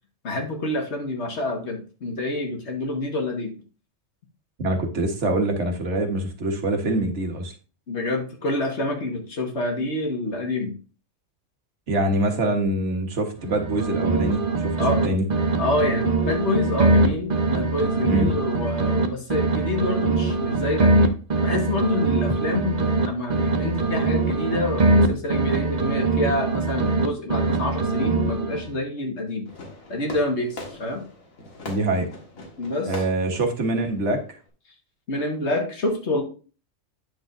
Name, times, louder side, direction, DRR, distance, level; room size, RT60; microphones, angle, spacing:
voice 1, 0.2-3.5 7.9-10.8 14.8-15.0 15.6-29.5 29.9-31.0 32.6-32.9 35.1-36.2, left 2 dB, 55° left, 2 dB, 1.7 m, -27 dB
voice 2, 4.6-7.5 11.9-14.7 15.0-15.2 18.0-18.3 31.7-32.1 32.9-34.2, right 1 dB, 60° right, 4 dB, 1.6 m, -24 dB
sound 1, 13.4-15.1 15.3-19.1 19.3-23.1 23.3-27.1 27.3-28.7, right 3 dB, 40° right, 0.6 m, -22 dB
Fireworks, 29.5-34.5, left 2 dB, 85° left, 2.1 m, -41 dB
9.3 x 6.2 x 2.6 m, 0.36 s
omnidirectional pair, 1.4 m